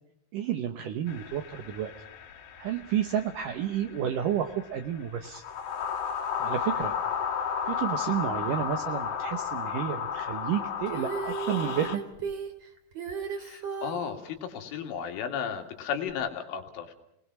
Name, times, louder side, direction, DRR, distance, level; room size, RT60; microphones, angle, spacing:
voice 1, 0.3-1.9 2.6-5.4 6.4-6.9 7.7-12.0, right 9 dB, 75° right, 6 dB, 1.9 m, -31 dB
sound 1, 1.1-12.0, left 7 dB, 55° left, 3.8 m, -33 dB
Female singing, 10.9-14.1 16.1-16.2, right 6 dB, 40° right, 2.6 m, -35 dB
voice 2, 13.3-16.9, left 7 dB, 90° left, 5 dB, 4.8 m, -34 dB
30.0 x 20.0 x 6.1 m, 0.80 s
omnidirectional pair, 5.4 m